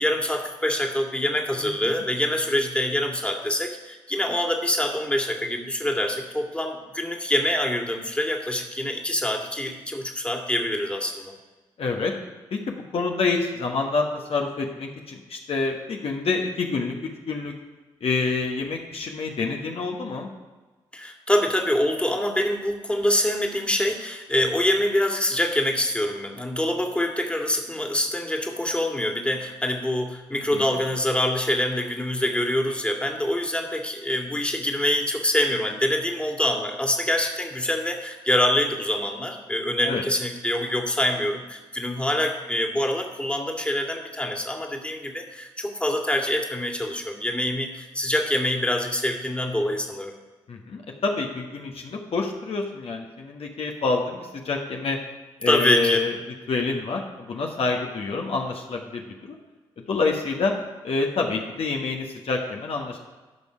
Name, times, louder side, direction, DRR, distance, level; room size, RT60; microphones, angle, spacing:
voice 1, 0.0-11.4 20.9-50.2 55.5-56.0, left 1 dB, 10° left, 2 dB, 2.0 m, -25 dB
voice 2, 11.8-12.1 12.5-17.5 18.0-20.3 30.3-30.6 39.8-40.0 50.5-55.0 55.4-56.1 56.5-59.4 59.9-60.5 60.8-63.0, left 4 dB, 55° left, 1 dB, 1.3 m, -27 dB
14.0 x 5.5 x 5.0 m, 1.3 s
hypercardioid pair, 45°, 11 cm